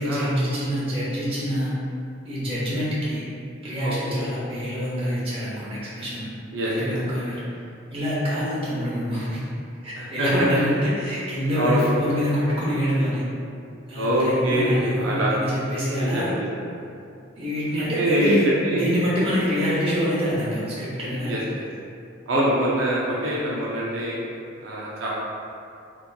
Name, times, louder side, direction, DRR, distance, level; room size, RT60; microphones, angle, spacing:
voice 1, 0.0-1.7 2.2-3.2 3.6-6.3 6.6-7.4 7.9-9.4 9.8-13.2 13.9-16.3 17.3-18.4 18.7-21.5, equal, 25° right, -9 dB, 0.8 m, -26 dB
voice 2, 3.8-4.3 6.5-6.9 10.0-10.5 11.6-11.8 13.9-15.3 15.9-16.8 17.8-18.9 21.3-21.6 22.3-24.2 24.6-25.1, equal, 70° right, -6 dB, 0.5 m, -24 dB
3.3 x 2.9 x 2.2 m, 2.5 s
head